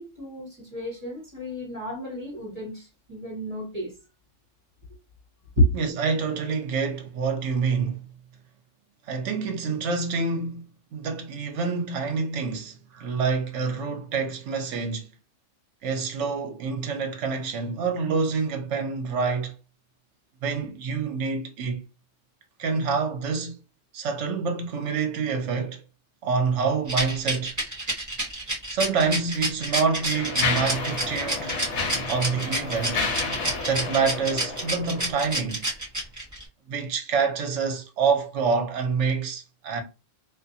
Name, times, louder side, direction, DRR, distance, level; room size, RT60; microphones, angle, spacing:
voice 1, 0.0-3.9 5.6-5.7, equal, 30° right, 1.3 m, -29 dB
voice 2, 5.7-8.0 9.1-10.6 10.9-15.1 15.8-19.5 20.4-21.8 22.6-23.5 23.9-25.8 26.2-27.6 28.7-31.5 32.1-33.0 33.7-35.6 36.7-39.8, right 5 dB, 70° right, 0.9 m, -27 dB
Rattle, 26.9-36.4, right 1 dB, 15° right, 0.8 m, -28 dB
Mechanisms, 28.7-28.9 29.6-35.4, left 4 dB, 65° left, 1.0 m, -31 dB
2.4 x 2.4 x 2.6 m
omnidirectional pair, 1.3 m